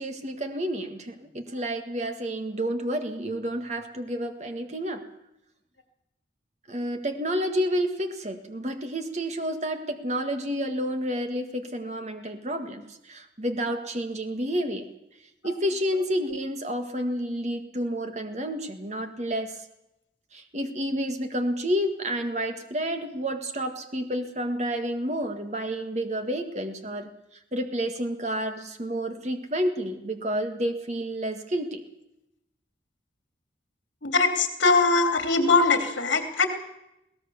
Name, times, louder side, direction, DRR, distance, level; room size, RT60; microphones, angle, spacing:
voice 1, 0.0-5.0 6.7-14.9 15.4-19.5 20.3-27.1 27.5-31.8, equal, 35° right, 6 dB, 1.8 m, -30 dB
voice 2, 34.0-36.5, left 4 dB, 80° left, 6 dB, 2.9 m, -21 dB
22.0 x 17.0 x 7.1 m, 0.87 s
head